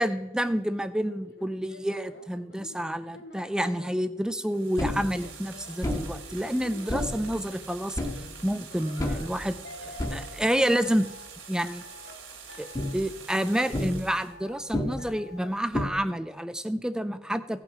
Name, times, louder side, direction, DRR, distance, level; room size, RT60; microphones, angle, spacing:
voice 1, 0.0-11.1 11.5-11.8 12.6-17.6, equal, 5° right, 12 dB, 0.4 m, -29 dB
sound 1, 1.0-3.9 4.5-7.4 8.7-10.4 10.8-11.3 11.7-12.2 12.5-13.0 13.3-13.9 14.2-14.6 15.0-15.5, left 1 dB, 55° left, 1.9 m, -48 dB
sound 2, 4.4-14.3, right 6 dB, 65° right, 2.2 m, -46 dB
sound 3, 4.8-11.7 12.0-12.1 12.4-15.9, left 1 dB, 15° left, 0.9 m, -33 dB
16.5 x 5.8 x 5.6 m, 1.0 s
head